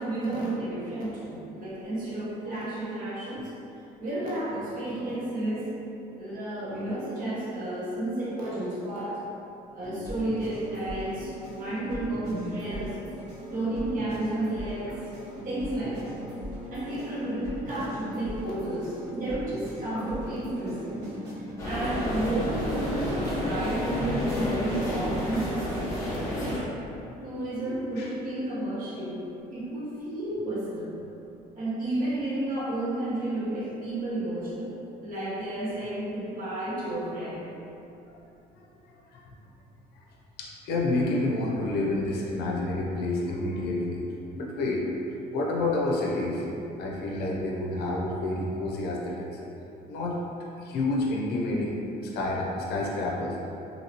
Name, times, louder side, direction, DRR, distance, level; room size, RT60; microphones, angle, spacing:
voice 1, 0.0-3.5 4.0-5.7 6.1-9.2 9.7-13.0 13.5-15.0 15.4-16.2 16.7-21.0 21.3-26.5 27.2-29.3 29.5-30.9 31.5-34.7 35.0-37.5, right 1 dB, 55° right, -8 dB, 1.1 m, -32 dB
sound 1, 9.8-22.7, equal, 80° right, 1.4 m, -39 dB
sound 2, 21.6-26.6, left 1 dB, 20° left, 0.9 m, -30 dB
voice 2, 27.7-28.1 39.1-39.2 40.4-44.0 44.3-44.9 45.3-46.4 46.8-49.3 49.9-50.2 50.6-53.4, left 2 dB, 75° left, -2 dB, 0.5 m, -29 dB
2.8 x 2.8 x 2.8 m, 2.8 s
cardioid pair, 110°, 17 cm